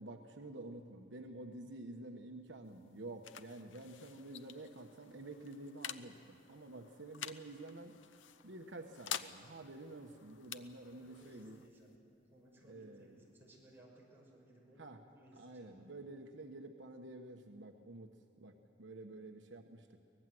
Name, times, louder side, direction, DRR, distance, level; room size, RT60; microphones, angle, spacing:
voice 1, 0.0-8.0 8.4-11.6 12.7-13.2 14.8-15.0 15.4-18.1 18.4-19.9, right 2 dB, 70° right, 4 dB, 1.2 m, -50 dB
sound 1, 2.5-13.8, left 9 dB, 90° left, 0.7 m, -50 dB
voice 2, 11.0-14.8 15.1-15.9, right 1 dB, 10° right, -3 dB, 6.0 m, -61 dB
24.0 x 19.5 x 7.8 m, 2.6 s
head